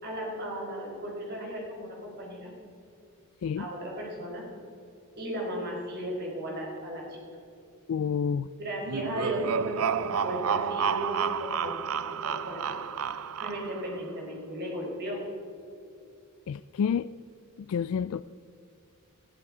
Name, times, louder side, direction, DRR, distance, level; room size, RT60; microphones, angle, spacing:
voice 1, 0.0-2.5 3.6-4.4 5.2-7.2 8.6-11.8 12.1-12.8 13.4-15.2, equal, 45° right, -2 dB, 4.7 m, -35 dB
voice 2, 7.9-8.5 16.5-17.1 17.6-18.2, left 7 dB, 70° left, 14 dB, 0.3 m, -29 dB
sound 1, 8.8-13.9, right 7 dB, 75° right, 0.5 m, -30 dB
21.0 x 13.5 x 4.9 m, 2.6 s
head